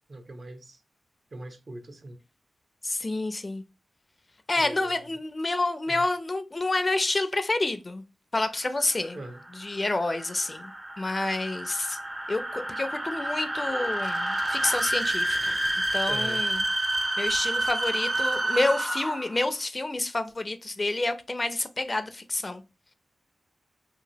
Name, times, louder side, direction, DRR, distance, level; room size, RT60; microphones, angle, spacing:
voice 1, 0.1-0.8 1.3-2.2 4.5-5.1 5.9-6.1 9.1-9.4 16.1-16.4, right 1 dB, 55° right, 0.7 m, -41 dB
voice 2, 2.8-3.6 4.5-8.0 8.3-9.2 9.6-10.7 11.0-12.0 12.3-15.6 15.9-16.6 17.2-22.6, left 2 dB, 35° left, 0.4 m, -28 dB
sound 1, 8.7-19.4, right 1 dB, 20° right, 0.5 m, -29 dB
2.9 x 2.6 x 2.7 m
cardioid pair, 50°, 0 cm